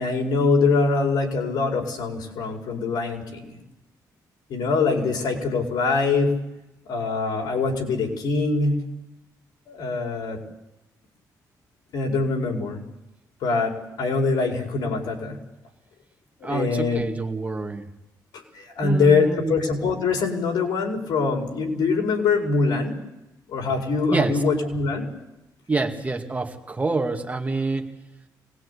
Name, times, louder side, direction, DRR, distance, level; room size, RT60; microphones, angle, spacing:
voice 1, 0.0-3.6 4.5-6.3 6.9-8.8 9.7-10.4 11.9-12.8 13.4-15.4 16.4-17.1 18.5-23.0 23.5-25.1, left 4 dB, 80° left, 2 dB, 5.0 m, -23 dB
voice 2, 16.4-17.9 18.8-19.6 24.1-24.4 25.7-27.9, right 3 dB, 20° right, 4 dB, 2.3 m, -27 dB
25.0 x 20.0 x 8.5 m, 0.95 s
cardioid pair, 115°, 7 cm